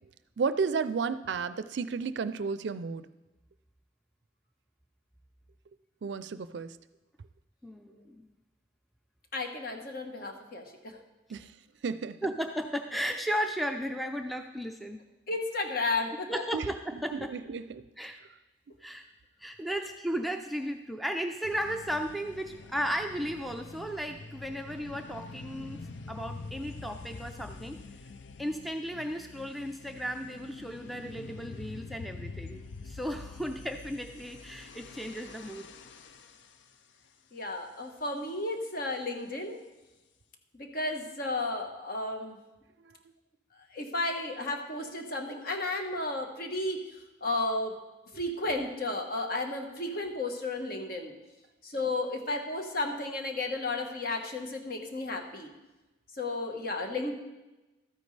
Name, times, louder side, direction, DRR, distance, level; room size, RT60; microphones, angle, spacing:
voice 1, 0.4-3.1 6.0-6.8 11.3-11.5 11.8-12.2 16.5-16.6 17.1-17.8, right 5 dB, 65° right, 14 dB, 0.4 m, -32 dB
voice 2, 7.6-8.3 12.2-15.0 16.3-17.3 18.0-18.2 18.8-19.1 19.4-27.8 28.4-35.7, equal, ahead, 5 dB, 0.4 m, -35 dB
voice 3, 9.3-11.0 15.3-16.3 37.3-39.6 40.5-42.4 43.7-46.8 47.2-47.7 48.1-51.1 51.6-55.5 56.2-57.1, left 2 dB, 50° left, 4 dB, 1.3 m, -33 dB
sound 1, 21.4-36.7, left 3 dB, 75° left, 0.5 m, -46 dB
13.0 x 9.4 x 3.3 m, 1.1 s
head